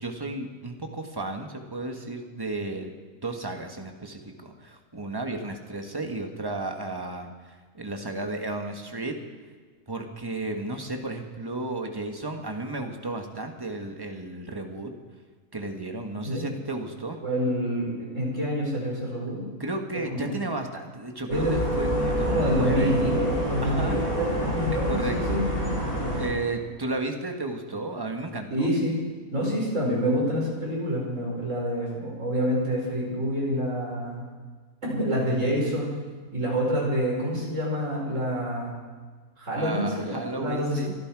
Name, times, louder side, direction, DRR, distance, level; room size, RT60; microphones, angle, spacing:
voice 1, 0.0-9.2 9.9-14.9 15.5-17.2 19.6-23.0 23.6-24.0 24.8-25.5 26.1-28.7 39.6-40.9, right 2 dB, 15° right, 4 dB, 1.4 m, -33 dB
voice 2, 17.2-19.5 20.1-20.3 21.3-21.5 22.3-25.4 28.5-29.0 29.3-34.3 34.8-36.0 36.3-38.7 39.4-40.8, equal, 60° right, -4 dB, 5.5 m, -27 dB
sound 1, 21.3-26.3, equal, 55° left, 6.1 m, -27 dB
24.0 x 11.5 x 4.8 m, 1.5 s
omnidirectional pair, 1.5 m